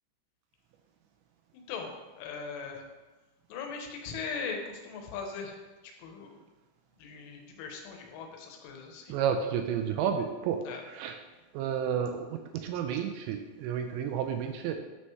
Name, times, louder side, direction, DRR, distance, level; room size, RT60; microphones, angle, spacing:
voice 1, 1.5-2.9 3.5-6.4 7.0-9.2 10.6-10.8, left 5 dB, 85° left, 2 dB, 3.4 m, -40 dB
voice 2, 9.1-10.6 10.9-11.1 11.5-14.8, right 8 dB, 85° right, 5 dB, 2.6 m, -31 dB
9.7 x 5.5 x 3.2 m, 1.2 s
omnidirectional pair, 5.5 m